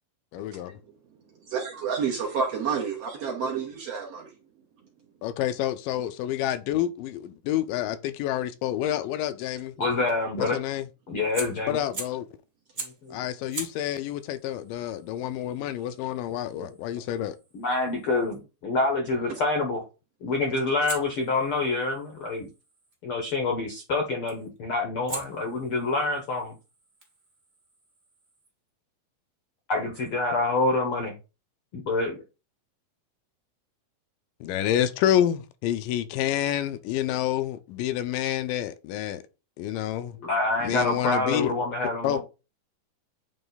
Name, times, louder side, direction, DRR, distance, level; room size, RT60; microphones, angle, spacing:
voice 1, 0.3-0.7 5.2-9.7 10.4-10.9 11.7-12.3 13.1-17.4 34.4-39.2 39.6-40.2 40.6-41.5 42.0-42.2, left 11 dB, 80° left, 2.2 m, -28 dB
voice 2, 1.5-4.3 15.9-16.0 19.3-19.4 20.6-20.7, right 6 dB, 65° right, 1.7 m, -30 dB
voice 3, 9.8-10.6 11.1-11.8 12.8-13.2 16.5-16.7 17.5-19.8 20.2-22.5 23.0-26.6 29.7-31.2 31.7-32.1 40.2-42.2, left 3 dB, 65° left, 1.3 m, -27 dB
Fire, 11.3-12.3 12.7-13.1 13.5-18.4 20.8-23.0 24.3-24.6 25.1-28.5, right 3 dB, 35° right, 1.1 m, -43 dB
8.9 x 3.0 x 4.0 m
omnidirectional pair, 3.9 m